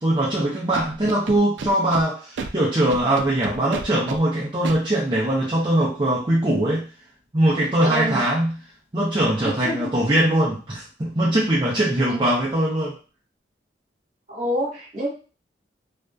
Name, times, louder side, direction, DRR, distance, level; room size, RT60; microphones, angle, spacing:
voice 1, 0.0-6.9 7.3-8.6 8.9-13.0, right 1 dB, 25° right, -7 dB, 0.5 m, -21 dB
Scratching (performance technique), 0.7-2.0 2.4-2.5 2.9-4.2 4.6-4.8, right 4 dB, 85° right, 0.4 m, -31 dB
voice 2, 7.8-8.2 9.4-9.9 12.1-12.2 14.3-15.1, equal, 45° right, -5 dB, 1.3 m, -27 dB
2.6 x 2.4 x 2.2 m, 0.35 s
head